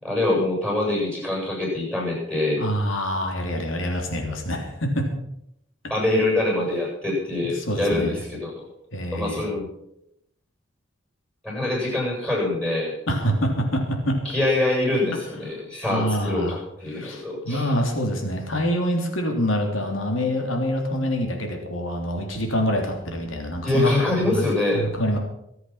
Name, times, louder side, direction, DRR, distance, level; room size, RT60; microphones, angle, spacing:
voice 1, 0.0-2.6 5.9-8.6 9.1-9.7 11.4-12.9 14.2-17.7 23.6-24.9, left 2 dB, 5° left, -3 dB, 7.7 m, -24 dB
voice 2, 2.6-4.7 4.9-5.0 7.6-8.2 8.9-9.5 13.1-13.8 14.0-14.1 15.9-16.6 16.9-23.9 24.2-24.5 24.7-25.2, equal, 75° left, 2 dB, 3.3 m, -26 dB
23.5 x 8.1 x 5.8 m, 0.79 s
head